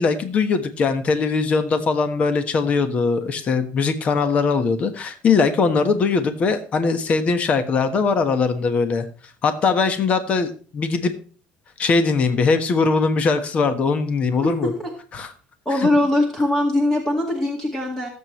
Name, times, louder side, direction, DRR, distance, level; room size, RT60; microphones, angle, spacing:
voice 1, 0.0-9.1 9.4-11.1 11.8-14.7 15.1-15.3, left 4 dB, 40° left, 9 dB, 1.3 m, -20 dB
voice 2, 14.4-14.9 15.7-18.1, left 1 dB, 15° left, 1 dB, 2.0 m, -21 dB
19.0 x 7.6 x 3.2 m, 0.38 s
cardioid pair, 125°, 3 cm